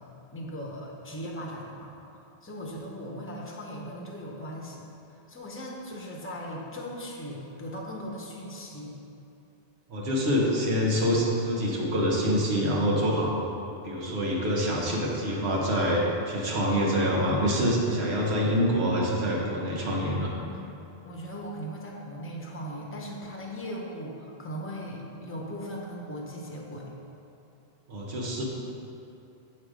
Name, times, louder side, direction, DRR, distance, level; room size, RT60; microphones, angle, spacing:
voice 1, 0.3-1.9 2.4-8.9 21.0-26.9, equal, 15° left, -2 dB, 0.6 m, -38 dB
voice 2, 9.9-13.3 13.8-20.3 27.9-28.4, equal, 85° right, -3 dB, 1.3 m, -26 dB
7.4 x 3.2 x 4.9 m, 2.7 s
omnidirectional pair, 1.1 m